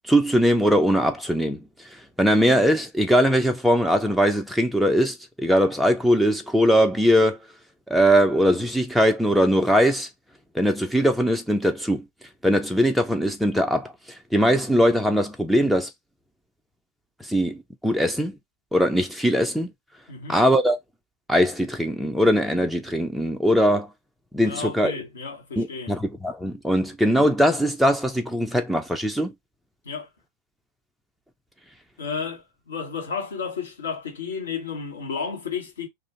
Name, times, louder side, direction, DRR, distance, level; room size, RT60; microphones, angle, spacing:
voice 1, 0.0-1.6 1.9-7.4 7.9-10.1 10.5-12.0 12.4-13.9 14.3-15.9 17.3-18.4 18.7-19.7 20.3-20.8 21.3-23.9 24.3-24.9 25.6-29.3, equal, ahead, 0.4 m, -21 dB
voice 2, 20.1-20.4 24.4-25.9 29.8-30.1 32.0-35.9, left 5 dB, 65° left, 1.2 m, -32 dB
2.5 x 2.4 x 2.8 m
figure-of-eight pair, 90°, 0 cm